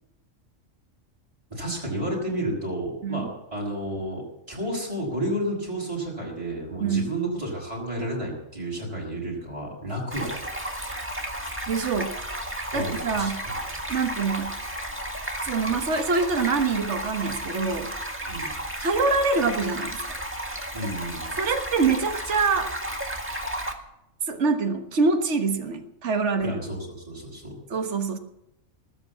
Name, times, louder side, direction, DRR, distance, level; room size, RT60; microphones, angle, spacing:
voice 1, 1.5-4.2 4.5-10.4 12.7-13.5 18.3-18.5 20.7-21.3 26.4-27.6, right 1 dB, 25° right, -4 dB, 6.0 m, -31 dB
Stream, 10.1-23.7, right 1 dB, 10° right, 1.8 m, -33 dB
voice 2, 11.7-12.2 12.7-13.4 13.9-14.6 15.4-17.9 18.8-20.2 21.4-22.7 24.3-26.6 27.7-28.2, right 4 dB, 60° right, 5 dB, 1.7 m, -25 dB
19.5 x 8.2 x 8.4 m, 0.84 s
omnidirectional pair, 1.4 m